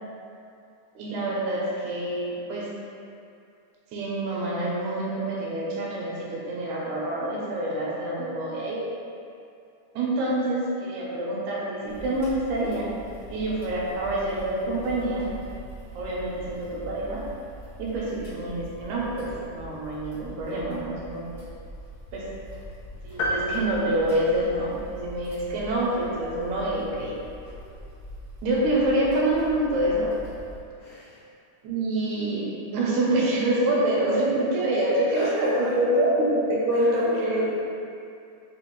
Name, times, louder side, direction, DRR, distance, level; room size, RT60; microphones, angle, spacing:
voice 1, 1.0-2.7 3.9-8.9 9.9-12.9 13.3-15.3 15.9-17.3 17.8-21.5 22.1-22.3 23.0-27.2 28.4-30.2 31.6-37.6, right 1 dB, 75° right, -4 dB, 1.9 m, -26 dB
sound 1, 11.9-30.6, equal, 55° left, 0.6 m, -43 dB
sound 2, 23.2-25.0, equal, 90° left, 2.2 m, -30 dB
voice 2, 30.7-31.3 35.1-36.0 36.7-37.4, left 1 dB, 75° left, -10 dB, 1.7 m, -41 dB
5.5 x 2.5 x 3.0 m, 2.5 s
omnidirectional pair, 3.7 m